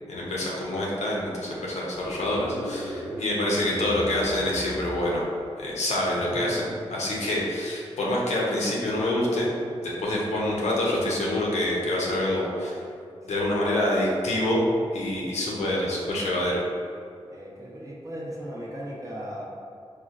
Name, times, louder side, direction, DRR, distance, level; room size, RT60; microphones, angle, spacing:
voice 1, 0.1-5.2 5.6-9.5 9.8-12.8 13.3-14.6 14.9-16.6, left 1 dB, 85° left, -4 dB, 0.7 m, -26 dB
sound 1, 1.9-5.5, equal, 75° right, 0.9 m, -37 dB
voice 2, 6.3-6.8 10.3-10.7 12.3-12.9 13.3-13.6 17.3-19.4, equal, 30° right, -5 dB, 0.6 m, -38 dB
4.3 x 2.0 x 2.4 m, 2.4 s
cardioid pair, 70°, 11 cm